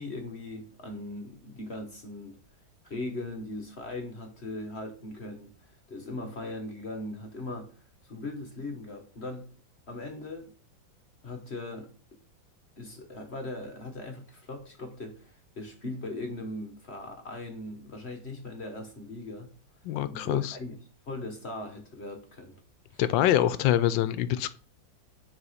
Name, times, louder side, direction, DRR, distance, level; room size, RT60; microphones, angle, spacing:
voice 1, 0.0-2.4 2.8-7.7 8.0-9.5 9.9-10.5 11.2-11.9 12.8-19.5 20.0-20.8 21.1-22.6 22.9-23.0, left 2 dB, 40° left, 1.2 m, -39 dB
voice 2, 19.8-20.6 23.0-24.5, left 12 dB, 80° left, 1.3 m, -25 dB
9.6 x 4.1 x 5.6 m
omnidirectional pair, 2.1 m